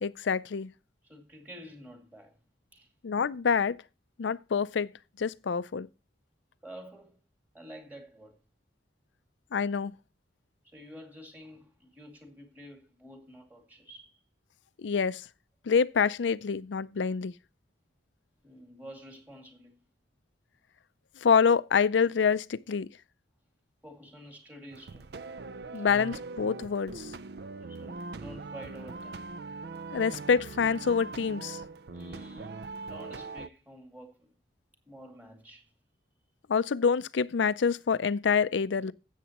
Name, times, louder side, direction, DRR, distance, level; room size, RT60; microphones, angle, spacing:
voice 1, 0.0-0.7 3.0-3.8 4.2-4.9 5.2-5.9 9.5-9.9 14.8-15.2 15.7-17.3 21.2-22.9 25.7-27.1 29.9-31.6 36.5-38.9, left 6 dB, 85° left, 0.5 m, -26 dB
voice 2, 1.0-2.3 2.7-2.9 6.6-7.2 7.5-8.4 10.6-14.1 18.4-19.8 23.8-25.1 25.7-25.9 27.6-29.2 31.9-34.3 34.9-35.7, equal, 10° right, 2.2 m, -49 dB
sound 1, 24.7-33.5, right 3 dB, 60° right, 0.5 m, -41 dB
13.0 x 8.3 x 3.0 m
head